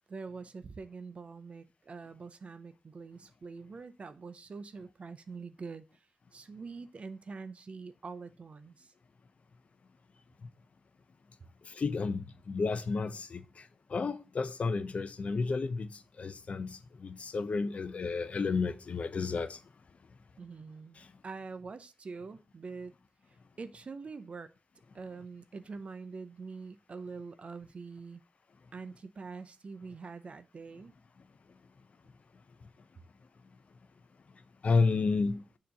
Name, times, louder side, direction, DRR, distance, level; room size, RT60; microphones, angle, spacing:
voice 1, 0.1-6.1 6.3-8.9 20.4-22.9 23.3-24.5 24.9-28.2 28.7-30.9, right 4 dB, 50° right, 0.5 m, -45 dB
voice 2, 11.7-13.6 13.9-19.6 34.6-35.4, left 4 dB, 55° left, 0.5 m, -31 dB
6.9 x 2.9 x 5.1 m
wide cardioid pair, 95°, 3 cm